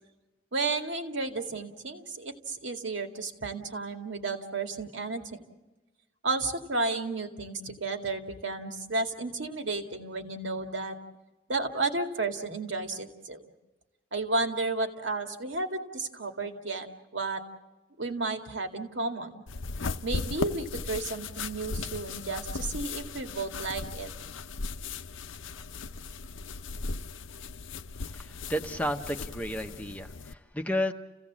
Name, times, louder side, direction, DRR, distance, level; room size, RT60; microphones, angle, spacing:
voice 1, 0.5-5.5 6.2-11.0 11.5-13.4 14.1-16.9 17.1-17.4 18.0-19.3 20.0-24.1, right 3 dB, 75° right, 5 dB, 2.2 m, -32 dB
sound 1, 19.5-30.3, left 4 dB, 85° left, 0.7 m, -37 dB
voice 2, 28.1-30.9, equal, 10° left, 4 dB, 0.9 m, -32 dB
30.0 x 16.5 x 7.3 m, 1.1 s
head